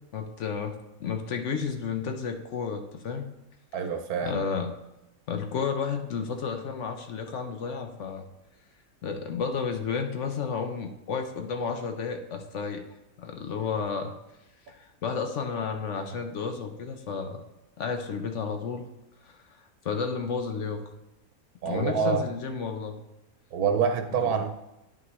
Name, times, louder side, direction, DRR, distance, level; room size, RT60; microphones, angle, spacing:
voice 1, 0.1-3.2 4.2-4.7 5.3-8.2 9.0-12.8 13.2-14.1 14.7-17.4 17.8-18.9 19.2-19.4 19.8-20.8 21.6-23.0 24.2-24.4, left 5 dB, 65° left, 6 dB, 0.9 m, -32 dB
voice 2, 3.7-4.4 21.6-22.3 23.5-24.5, right 6 dB, 80° right, 6 dB, 1.3 m, -26 dB
9.5 x 5.8 x 3.2 m, 0.93 s
omnidirectional pair, 1.5 m